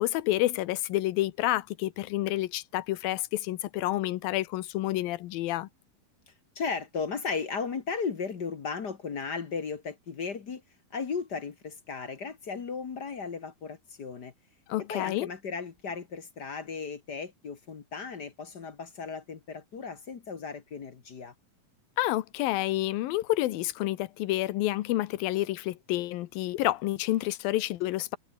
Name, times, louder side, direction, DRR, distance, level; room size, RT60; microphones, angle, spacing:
voice 1, 0.0-5.7 14.7-15.3 22.0-28.2, left 16 dB, 90° left, 2.8 m, -29 dB
voice 2, 6.5-10.6 10.9-14.3 14.8-21.3, left 5 dB, 45° left, 1.4 m, -36 dB
omnidirectional pair, 4.0 m